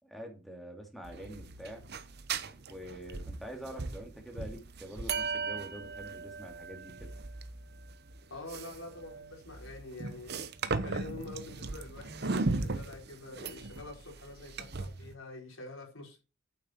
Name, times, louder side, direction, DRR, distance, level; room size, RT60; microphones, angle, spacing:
voice 1, 0.0-1.8 2.7-7.1, equal, ahead, 2.5 m, -45 dB
sound 1, 1.0-15.1, right 3 dB, 50° right, 0.8 m, -38 dB
voice 2, 8.3-10.5 10.8-16.2, left 2 dB, 70° left, 4.6 m, -46 dB
8.9 x 7.5 x 4.5 m
head